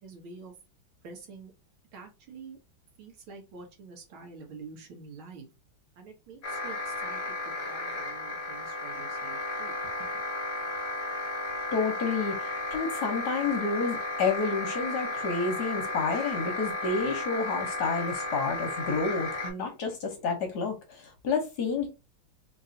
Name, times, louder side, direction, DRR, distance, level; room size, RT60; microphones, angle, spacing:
voice 1, 0.0-0.5 1.0-1.5 1.9-2.6 3.0-5.5 6.0-10.1, right 4 dB, 80° right, 1.9 m, -47 dB
sound 1, 6.4-19.5, left 2 dB, 40° left, 1.1 m, -34 dB
voice 2, 11.7-21.9, left 4 dB, 60° left, 1.2 m, -30 dB
3.9 x 2.9 x 2.7 m
omnidirectional pair, 2.2 m